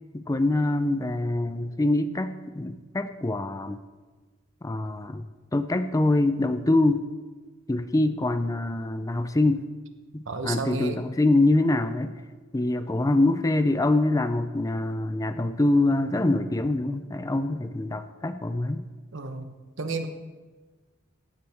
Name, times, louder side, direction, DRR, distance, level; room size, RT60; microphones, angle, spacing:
voice 1, 0.1-3.8 4.6-5.2 5.5-7.1 7.7-9.7 10.1-12.1 12.5-18.8, left 2 dB, 15° left, 10 dB, 0.4 m, -24 dB
voice 2, 10.3-11.0 19.1-19.5 19.8-20.1, right 3 dB, 65° right, 7 dB, 1.0 m, -31 dB
15.5 x 9.3 x 3.5 m, 1.3 s
head